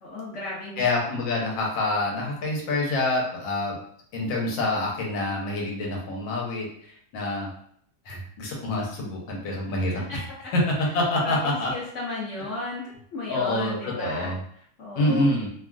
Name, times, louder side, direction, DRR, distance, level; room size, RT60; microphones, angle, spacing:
voice 1, 0.0-0.8 9.9-10.2 11.2-15.3, left 2 dB, 60° left, -6 dB, 0.8 m, -35 dB
voice 2, 0.8-3.8 4.1-7.5 8.1-10.2 10.5-11.7 13.3-14.4 15.0-15.5, left 2 dB, 80° left, -2 dB, 1.5 m, -26 dB
3.3 x 2.3 x 2.3 m, 0.64 s
omnidirectional pair, 2.0 m